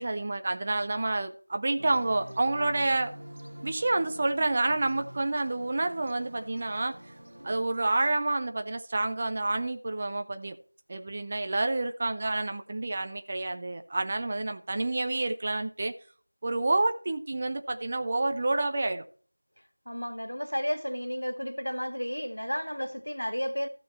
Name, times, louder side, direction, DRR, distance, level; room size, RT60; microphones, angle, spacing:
voice 1, 0.0-3.1 3.6-6.9 7.4-10.6 10.9-15.9 16.4-19.0, right 2 dB, 15° right, 0.4 m, -29 dB
sound 1, 1.8-7.6, right 1 dB, 40° right, 0.8 m, -46 dB
voice 2, 19.9-23.7, equal, 75° left, 1.8 m, -32 dB
14.0 x 6.1 x 4.3 m
figure-of-eight pair, 175°, 0 cm